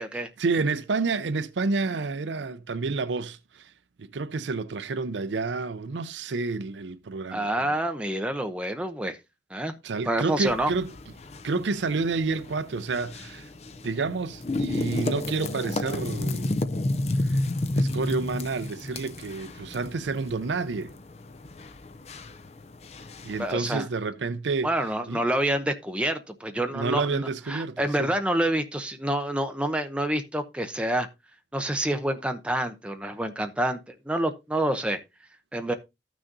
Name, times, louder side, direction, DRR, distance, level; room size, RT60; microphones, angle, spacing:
voice 1, 0.4-3.7 4.0-7.8 9.8-10.9 11.4-13.5 13.8-16.6 17.2-17.4 17.7-20.9 23.2-24.7 25.1-25.2 26.7-28.1, right 4 dB, 85° right, 0.5 m, -29 dB
voice 2, 7.3-9.2 9.5-9.7 10.1-10.7 23.4-23.9 24.6-31.1 31.5-35.0 35.5-35.7, right 1 dB, 5° right, 0.8 m, -27 dB
sound 1, 10.3-23.5, left 2 dB, 35° left, 0.5 m, -32 dB
14.5 x 6.2 x 2.6 m
head